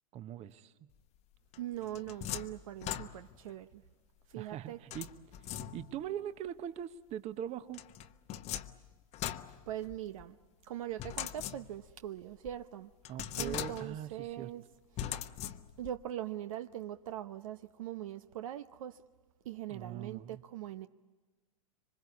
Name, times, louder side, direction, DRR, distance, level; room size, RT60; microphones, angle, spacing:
voice 1, 0.1-0.9 4.3-5.1 5.7-7.8 13.1-14.5 19.7-20.4, right 10 dB, 35° right, 1.1 m, -41 dB
sound 1, 1.5-3.5 4.9-6.1 7.7-10.2 11.0-12.0 12.4-12.5 13.0-14.1 15.0-16.0, left 11 dB, 35° left, 1.0 m, -41 dB
voice 2, 1.6-3.8 4.3-4.8 9.7-10.4 10.6-12.9 13.4-14.6 15.0-15.2 15.8-19.0 19.4-20.9, right 12 dB, 65° right, 0.8 m, -41 dB
26.5 x 24.5 x 8.5 m
hypercardioid pair, 100°, 19 cm